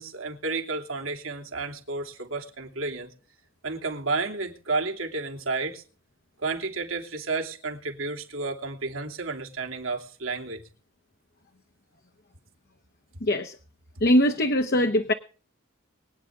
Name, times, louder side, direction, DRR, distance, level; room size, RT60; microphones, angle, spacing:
voice 1, 0.0-3.1 3.6-5.8 6.4-10.6, right 3 dB, 80° right, 3.0 m, -31 dB
voice 2, 13.2-13.5 14.0-15.1, left 1 dB, 50° left, 1.0 m, -21 dB
24.0 x 9.3 x 3.7 m
head